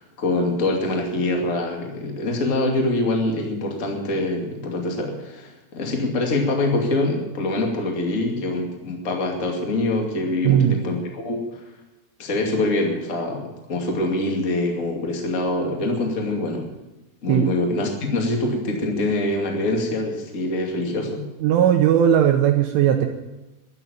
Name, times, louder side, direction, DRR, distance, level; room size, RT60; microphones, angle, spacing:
voice 1, 0.0-11.4 12.2-13.4 13.7-16.7 17.2-21.3, left 2 dB, 35° left, 1 dB, 1.2 m, -24 dB
voice 2, 10.4-10.8 17.3-17.5 21.4-23.1, right 10 dB, 80° right, 4 dB, 3.3 m, -17 dB
12.0 x 11.0 x 9.3 m, 1.0 s
omnidirectional pair, 5.8 m